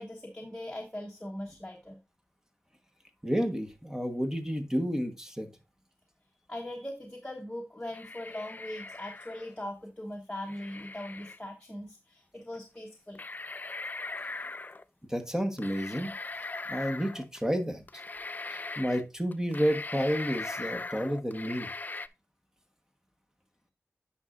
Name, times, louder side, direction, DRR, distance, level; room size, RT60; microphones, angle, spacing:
voice 1, 0.0-2.0 6.5-13.2, left 1 dB, 15° left, 0 dB, 1.2 m, -40 dB
voice 2, 3.2-5.5 15.1-16.1 16.7-17.8 18.5-21.7, equal, 10° right, 6 dB, 1.3 m, -30 dB
sound 1, 7.9-9.6 10.5-11.4 12.6-12.7 13.2-14.8 15.6-17.4 17.9-19.0 19.3-22.1, left 3 dB, 35° left, 0.4 m, -40 dB
9.4 x 5.7 x 2.5 m, 0.26 s
wide cardioid pair, 75°, 5 cm